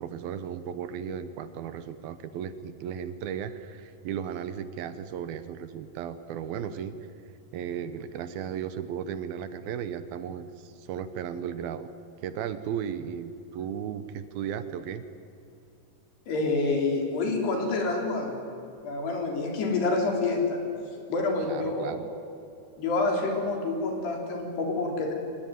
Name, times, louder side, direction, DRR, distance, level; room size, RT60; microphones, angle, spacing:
voice 1, 0.0-7.0 7.5-11.9 12.2-15.1 21.4-22.1, right 8 dB, 70° right, 12 dB, 2.6 m, -35 dB
voice 2, 16.3-18.3 18.8-20.6 21.1-21.9 22.8-25.1, left 3 dB, 70° left, 1 dB, 5.8 m, -27 dB
23.5 x 19.5 x 9.3 m, 2.6 s
omnidirectional pair, 4.9 m